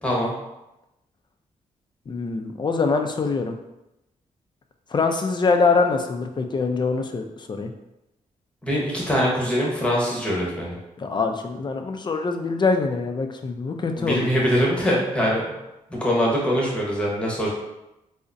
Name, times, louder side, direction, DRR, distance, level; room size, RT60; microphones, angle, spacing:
voice 1, 0.0-0.3 8.6-10.8 14.0-15.5 15.9-17.5, equal, 10° left, -4 dB, 1.1 m, -23 dB
voice 2, 2.1-3.6 4.9-7.7 11.0-14.3, left 4 dB, 30° left, 5 dB, 0.4 m, -24 dB
3.7 x 2.1 x 2.5 m, 0.93 s
cardioid pair, 70°, 15 cm